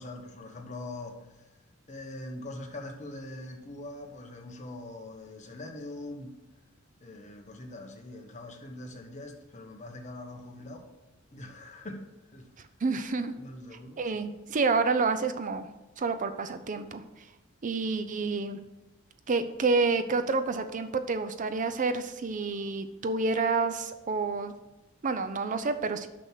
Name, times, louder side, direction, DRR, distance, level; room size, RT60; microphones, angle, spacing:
voice 1, 0.0-1.5 1.9-6.4 7.0-10.9 11.3-12.5 13.4-14.2, left 1 dB, 35° left, 3 dB, 1.2 m, -43 dB
voice 2, 12.8-13.3 14.0-15.7 16.0-17.0 17.6-18.6 19.3-24.5 25.0-26.1, right 4 dB, 40° right, 10 dB, 0.5 m, -28 dB
6.3 x 6.1 x 6.6 m, 1.0 s
head